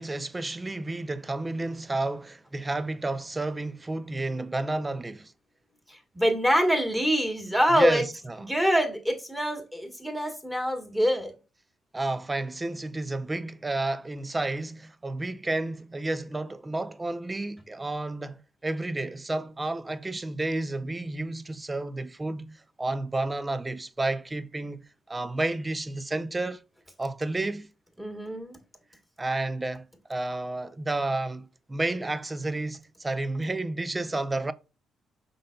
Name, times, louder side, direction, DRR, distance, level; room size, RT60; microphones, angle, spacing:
voice 1, 0.0-5.3 7.7-8.5 11.9-26.6 27.0-27.7 29.2-34.5, right 2 dB, 20° right, 0.4 m, -31 dB
voice 2, 5.9-8.1 8.5-11.3 28.0-28.6, equal, 5° right, 1.4 m, -25 dB
5.3 x 3.9 x 2.2 m
cardioid pair, 90°, 0 cm